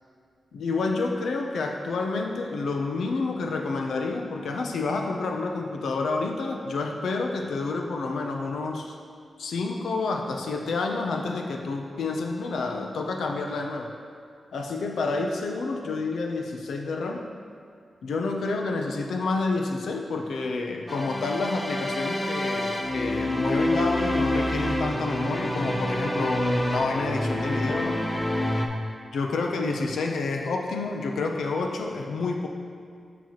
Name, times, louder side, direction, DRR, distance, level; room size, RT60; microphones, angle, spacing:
voice 1, 0.5-8.9 9.4-13.9 14.5-17.2 18.0-28.0 29.1-32.5, left 3 dB, 90° left, 2 dB, 0.6 m, -29 dB
sound 1, 20.9-28.7, left 1 dB, 10° left, 0.6 m, -27 dB
7.1 x 6.0 x 3.0 m, 2.2 s
cardioid pair, 75°, 0 cm